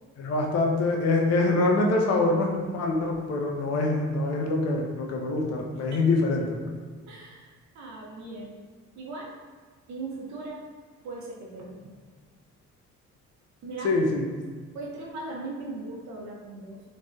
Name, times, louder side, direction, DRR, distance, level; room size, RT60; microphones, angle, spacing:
voice 1, 0.2-6.4 13.8-14.3, left 2 dB, 55° left, 1 dB, 0.5 m, -25 dB
voice 2, 7.1-8.6 8.9-9.4 9.9-10.7 11.0-12.0 13.6-13.9 14.7-16.8, right 3 dB, 65° right, -2 dB, 0.6 m, -39 dB
3.2 x 2.6 x 2.2 m, 1.5 s
cardioid pair, 90°, 30 cm